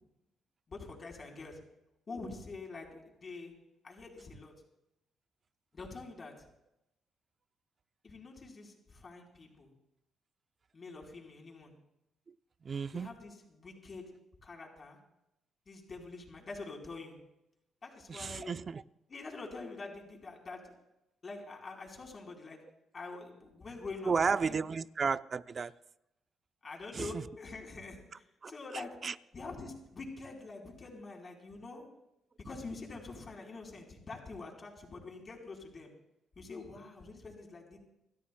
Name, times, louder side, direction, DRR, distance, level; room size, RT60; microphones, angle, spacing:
voice 1, 0.7-1.6 2.1-3.5 3.8-4.5 5.7-6.3 8.0-9.7 10.7-11.8 12.9-14.1 14.4-15.0 15.7-17.2 17.8-18.6 19.1-20.7 21.2-22.6 22.9-24.1 24.5-24.6 26.6-29.0 29.3-31.9 32.4-35.9 36.4-37.8, left 3 dB, 35° left, 3.9 m, -45 dB
voice 2, 12.6-13.1 18.1-18.8 24.0-25.7 26.9-27.2 28.4-28.5 29.0-29.1, right 5 dB, 40° right, 0.5 m, -33 dB
28.5 x 12.5 x 2.2 m
cardioid pair, 90°, 0 cm